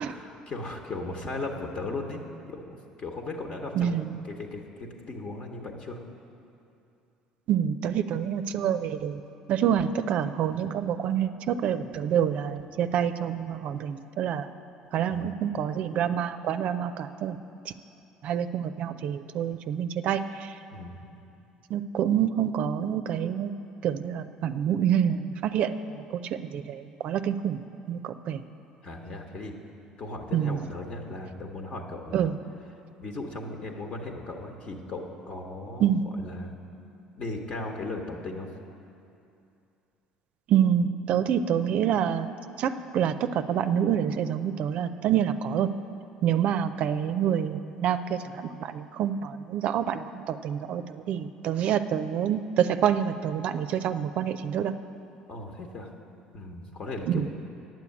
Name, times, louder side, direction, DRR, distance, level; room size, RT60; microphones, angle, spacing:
voice 1, 0.1-2.2 2.5-4.0 4.2-6.0 14.9-15.4 20.7-21.0 28.8-29.5 30.0-32.3 33.0-36.5 37.2-38.5 46.4-46.5 55.3-55.9 56.3-57.2, left 2 dB, 45° left, 2 dB, 1.2 m, -37 dB
voice 2, 3.8-4.2 7.5-9.2 9.5-14.5 14.9-17.4 17.7-17.8 18.2-20.6 21.7-23.5 23.8-27.6 27.9-28.4 30.3-30.6 32.1-32.3 35.8-36.0 40.5-42.3 42.6-45.7 46.2-54.7 57.1-57.3, right 9 dB, 60° right, 10 dB, 0.4 m, -27 dB
9.3 x 7.0 x 8.5 m, 2.7 s
hypercardioid pair, 75°, 3 cm